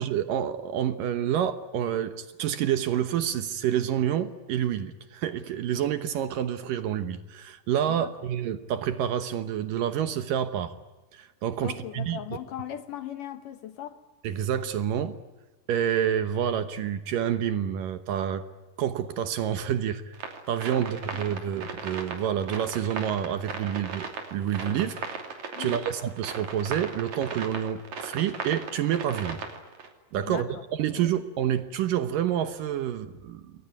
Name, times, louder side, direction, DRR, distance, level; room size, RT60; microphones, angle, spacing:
voice 1, 0.0-10.7 11.1-12.2 14.2-15.2 15.7-18.4 18.8-20.1 20.5-25.0 25.6-29.5 30.1-33.5, right 10 dB, 70° right, 11 dB, 2.4 m, -28 dB
voice 2, 11.6-14.0 20.8-20.9 25.6-25.9 30.2-30.6 31.0-31.1, left 10 dB, 65° left, 10 dB, 2.4 m, -38 dB
sound 1, 20.1-29.9, right 5 dB, 50° right, 4.0 m, -37 dB
28.5 x 22.0 x 9.5 m, 1.2 s
omnidirectional pair, 4.6 m